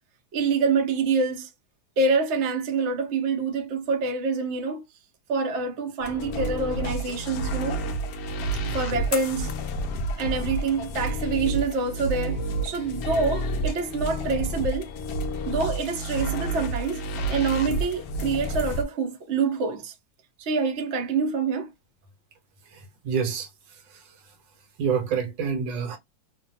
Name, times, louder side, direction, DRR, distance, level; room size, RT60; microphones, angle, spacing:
voice 1, 0.3-1.5 2.0-4.8 5.3-7.8 8.6-9.5 10.2-14.9 15.5-17.0 17.3-19.9 20.4-21.7, right 4 dB, 60° right, 0.7 m, -26 dB
sound 1, 6.0-18.8, right 1 dB, 75° left, 0.8 m, -30 dB
voice 2, 23.0-23.5 24.8-26.0, right 6 dB, 75° right, 1.3 m, -26 dB
3.1 x 2.2 x 2.6 m
omnidirectional pair, 2.1 m